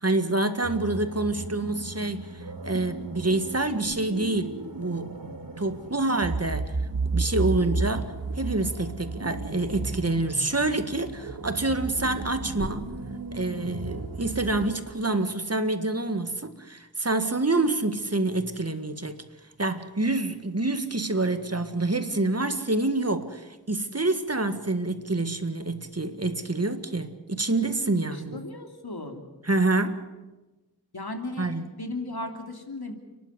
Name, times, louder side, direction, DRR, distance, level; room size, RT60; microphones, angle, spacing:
voice 1, 0.0-5.1 5.6-6.7 7.1-12.8 13.3-19.2 19.6-28.4 29.5-30.0 31.4-31.6, right 2 dB, 40° right, 1.8 m, -27 dB
sound 1, 0.6-14.7, right 3 dB, 65° right, 2.2 m, -34 dB
voice 2, 28.1-29.2 30.9-32.9, left 2 dB, 85° left, 3.1 m, -36 dB
30.0 x 11.5 x 9.7 m
wide cardioid pair, 50°, 37 cm